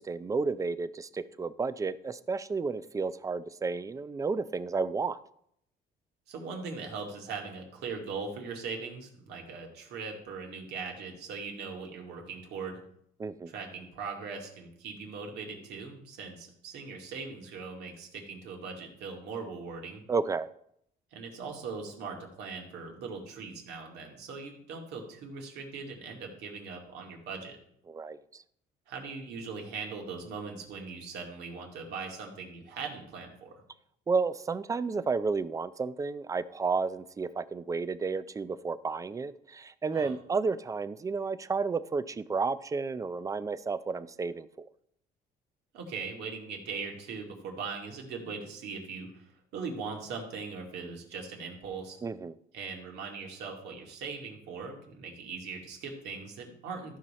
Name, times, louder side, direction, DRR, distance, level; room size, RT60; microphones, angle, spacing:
voice 1, 0.0-5.2 13.2-13.5 20.1-20.5 27.9-28.4 34.1-44.7 52.0-52.3, right 4 dB, 20° right, 15 dB, 0.4 m, -32 dB
voice 2, 6.3-12.8 13.5-20.0 21.1-27.6 28.9-33.5 39.9-40.1 45.7-49.2 49.5-52.0 52.5-57.0, right 5 dB, 80° right, 1 dB, 2.2 m, -40 dB
14.0 x 5.5 x 4.2 m, 0.71 s
cardioid pair, 110°, 17 cm